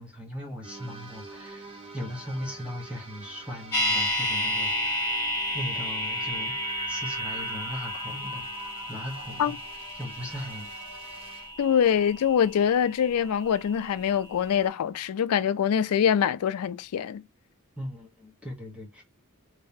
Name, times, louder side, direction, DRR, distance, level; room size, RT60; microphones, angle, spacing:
voice 1, 0.0-5.2 5.5-8.4 8.9-9.6 9.9-10.7 17.8-19.0, equal, 5° right, 1.1 m, -38 dB
sound 1, 0.6-11.5, right 2 dB, 25° right, 1.3 m, -42 dB
sound 2, 3.7-13.8 14.0-14.1, left 1 dB, 10° left, 1.8 m, -32 dB
voice 2, 11.6-17.2, left 8 dB, 75° left, 0.3 m, -24 dB
3.3 x 3.2 x 2.7 m
head